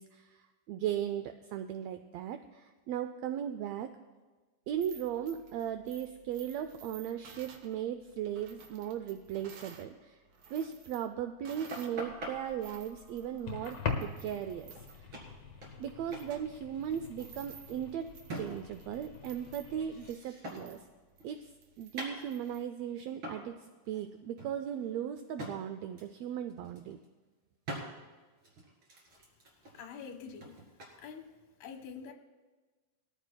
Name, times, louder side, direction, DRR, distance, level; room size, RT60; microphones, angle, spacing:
voice 1, 0.0-3.9 4.7-10.2 10.5-15.1 15.8-20.8 21.2-21.5 21.8-27.0, right 9 dB, 80° right, 9 dB, 1.5 m, -37 dB
sound 1, 4.7-9.9 10.2-12.0 12.4-22.6, right 6 dB, 60° right, 1.8 m, -55 dB
sound 2, 11.7-12.3 14.5-14.6 14.7-14.9 15.1-15.9 16.1-16.3 16.6-18.8 19.2-20.8 21.2-22.6 23.2-23.5 23.8-24.0 24.4-25.6 26.0-26.2 26.5-27.1 27.6-27.9 28.4-30.9, right 1 dB, 45° right, 2.8 m, -44 dB
sound 3, 11.9-20.1, left 5 dB, 55° left, 2.4 m, -43 dB
voice 2, 29.7-30.5 31.0-31.3 31.6-32.1, left 6 dB, 75° left, 4 dB, 2.4 m, -45 dB
20.5 x 13.5 x 2.3 m, 1.3 s
omnidirectional pair, 3.4 m